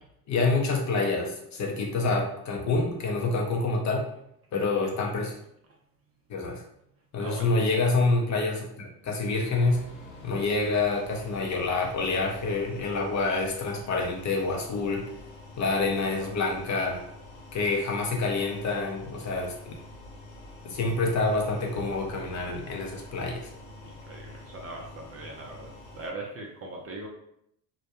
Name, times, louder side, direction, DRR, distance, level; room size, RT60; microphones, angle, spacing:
voice 1, 0.3-4.1 4.5-5.4 6.3-6.6 7.1-9.9 10.2-15.1 15.6-17.0 17.5-19.7 20.6-23.5, left 3 dB, 35° left, 1 dB, 0.6 m, -27 dB
voice 2, 7.2-7.5 16.0-16.3 23.8-27.1, right 2 dB, 30° right, 0 dB, 0.5 m, -41 dB
sound 1, 9.4-26.1, left 2 dB, 70° left, 1.0 m, -47 dB
2.3 x 2.1 x 2.8 m, 0.74 s
hypercardioid pair, 75°, 49 cm